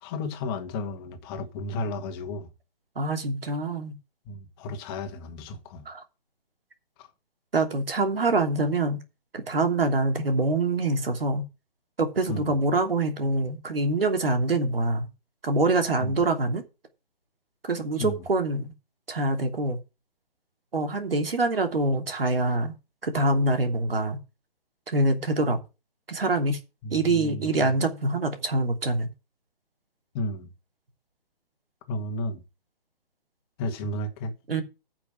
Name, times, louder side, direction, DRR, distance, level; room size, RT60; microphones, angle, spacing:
voice 1, 0.0-2.5 4.3-5.9 7.0-7.1 12.3-12.5 16.0-16.1 18.0-18.2 26.8-27.7 30.1-30.5 31.9-32.4 33.6-34.3, left 2 dB, 25° left, 1.8 m, -33 dB
voice 2, 3.0-3.9 5.9-6.0 7.5-9.0 9.3-11.4 12.0-15.1 15.4-16.6 17.7-18.7 19.1-19.8 20.7-22.7 23.0-24.2 24.9-25.6 26.1-26.6 26.9-29.1 34.5-34.6, right 2 dB, 75° right, 3.0 m, -25 dB
10.0 x 6.0 x 7.4 m
figure-of-eight pair, 140°, 29 cm